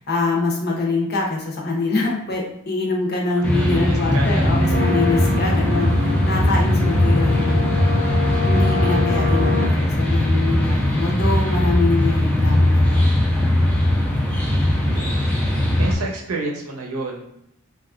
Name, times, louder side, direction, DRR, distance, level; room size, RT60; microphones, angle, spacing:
voice 1, 0.1-5.9 6.3-7.8 8.4-13.7, left 2 dB, 45° left, -1 dB, 0.6 m, -24 dB
sound 1, 3.4-16.0, left 1 dB, 5° left, 0.4 m, -19 dB
voice 2, 3.6-4.7 5.0-5.2 14.2-17.3, right 2 dB, 85° right, 0 dB, 0.7 m, -31 dB
sound 2, 4.7-9.7, left 2 dB, 80° left, 0.9 m, -23 dB
3.0 x 2.3 x 2.4 m, 0.76 s
head